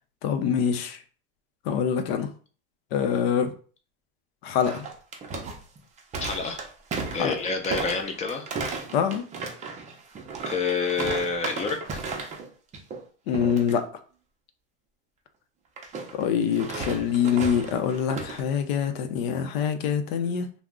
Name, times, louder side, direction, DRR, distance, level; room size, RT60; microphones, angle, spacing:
voice 1, 0.2-1.0 1.6-2.3 2.9-3.5 4.4-4.9 7.1-7.3 8.9-9.2 13.3-13.9 16.1-20.5, left 7 dB, 80° left, 8 dB, 0.6 m, -25 dB
sound 1, 4.6-12.5 12.7-13.0 13.3-13.7 15.8-18.4, right 4 dB, 25° right, 0.5 m, -35 dB
voice 2, 6.2-6.6 7.1-8.5 10.4-12.0, left 4 dB, 25° left, 4 dB, 0.5 m, -28 dB
2.4 x 2.1 x 3.5 m, 0.41 s
supercardioid pair, 125°, 30 cm